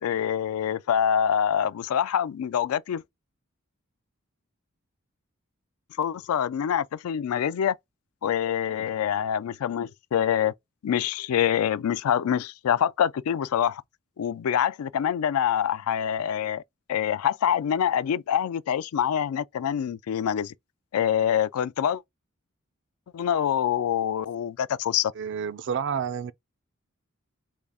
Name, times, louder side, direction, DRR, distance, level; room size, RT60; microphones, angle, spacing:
voice 1, 0.0-3.0 6.0-7.8 8.2-10.5 10.8-13.8 14.2-16.6 16.9-20.5 20.9-22.0 23.1-25.1, left 9 dB, 90° left, 0.3 m, -25 dB
voice 2, 25.2-26.3, right 7 dB, 60° right, 0.4 m, -29 dB
3.7 x 2.3 x 3.3 m
head